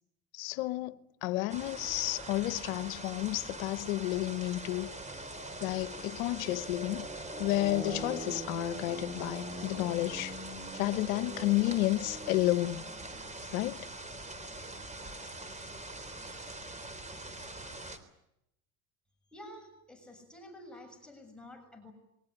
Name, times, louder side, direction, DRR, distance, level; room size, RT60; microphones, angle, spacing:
voice 1, 0.3-4.9 5.6-7.1 7.4-10.3 10.7-12.8 13.5-13.9, left 18 dB, 80° left, 1.1 m, -31 dB
sound 1, 1.5-18.0, right 1 dB, 15° right, 3.7 m, -42 dB
voice 2, 19.2-21.9, left 1 dB, ahead, 6.8 m, -50 dB
22.5 x 19.0 x 10.0 m
hypercardioid pair, 80°, 41 cm